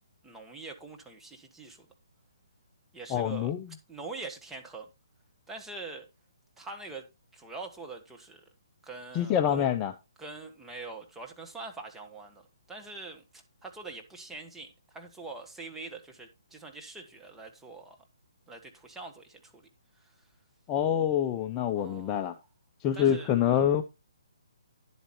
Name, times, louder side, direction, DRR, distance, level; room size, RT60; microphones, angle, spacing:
voice 1, 0.2-1.8 2.9-3.5 3.9-4.9 5.5-6.1 6.6-7.0 7.3-8.4 8.8-9.7 10.2-18.0 18.5-19.7 20.0-20.1 21.7-22.4 22.9-23.3, right 3 dB, 5° right, 1.4 m, -44 dB
voice 2, 3.1-3.6 9.1-9.9 20.7-22.3 22.8-23.8, left 9 dB, 20° left, 0.6 m, -26 dB
10.5 x 8.1 x 3.0 m
hypercardioid pair, 145°, 2 cm